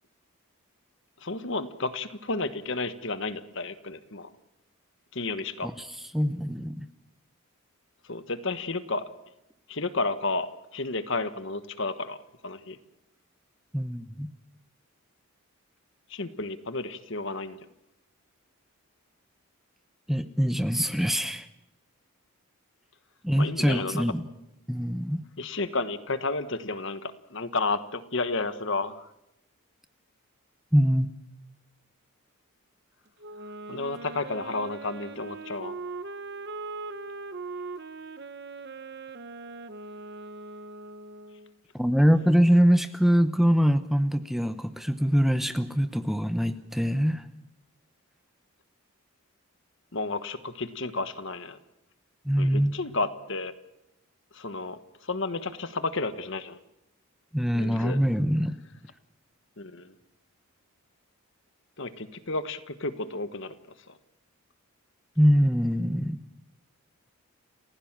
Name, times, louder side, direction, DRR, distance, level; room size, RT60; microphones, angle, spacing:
voice 1, 1.2-4.3 5.1-5.7 8.0-9.0 9.7-12.2 12.4-12.8 16.1-17.6 23.4-24.0 25.4-29.1 33.7-35.8 49.9-51.6 52.4-53.5 54.3-56.6 57.5-58.0 59.6-59.9 61.8-63.5 63.9-64.0, left 3 dB, 55° left, 1.3 m, -32 dB
voice 2, 6.1-6.9 13.7-14.3 20.1-21.5 23.2-24.2 24.7-25.2 30.7-31.1 41.8-47.3 52.2-52.7 57.3-58.6 65.2-66.2, equal, ahead, 0.8 m, -23 dB
Wind instrument woodwind instrument, 33.2-41.5, right 3 dB, 50° right, 0.9 m, -40 dB
29.0 x 16.0 x 7.4 m
head